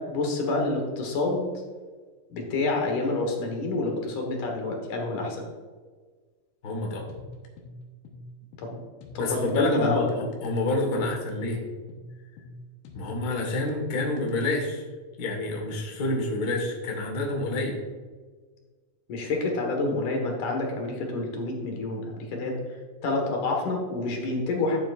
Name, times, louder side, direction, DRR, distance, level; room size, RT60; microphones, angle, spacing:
voice 1, 0.1-1.5 2.3-5.5 8.6-8.7 9.1-10.2 11.0-11.1 19.1-22.8 23.0-24.8, left 2 dB, 65° left, 1 dB, 2.7 m, -28 dB
voice 2, 6.6-7.1 9.2-11.6 12.9-14.8 15.2-17.8, left 2 dB, 50° left, 0 dB, 1.2 m, -28 dB
sound 1, 7.1-14.7, left 1 dB, 85° left, 2.9 m, -45 dB
12.0 x 7.4 x 2.5 m, 1.4 s
omnidirectional pair, 4.1 m